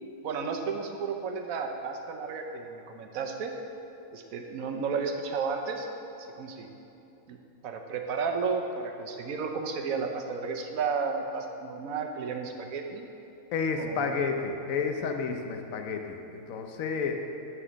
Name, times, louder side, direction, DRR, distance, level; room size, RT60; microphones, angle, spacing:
voice 1, 0.2-3.5 4.1-5.9 6.3-6.7 7.3-7.4 7.6-13.1 13.8-14.1, right 5 dB, 85° right, 4 dB, 1.2 m, -33 dB
voice 2, 13.5-17.2, left 5 dB, 80° left, 4 dB, 1.1 m, -31 dB
9.9 x 4.8 x 6.2 m, 2.9 s
omnidirectional pair, 1.4 m